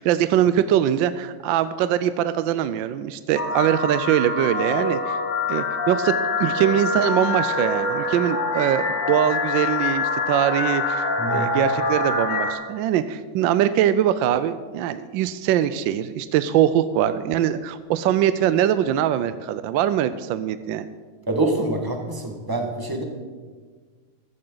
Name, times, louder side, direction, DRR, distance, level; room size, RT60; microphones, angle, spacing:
voice 1, 0.0-5.2 5.5-20.9, right 11 dB, 75° right, 13 dB, 1.2 m, -22 dB
sound 1, 3.4-12.5, left 3 dB, 55° left, 2.1 m, -25 dB
voice 2, 11.2-11.5 21.3-23.0, right 2 dB, 10° right, 2 dB, 1.3 m, -25 dB
15.5 x 13.5 x 3.9 m, 1.5 s
omnidirectional pair, 2.3 m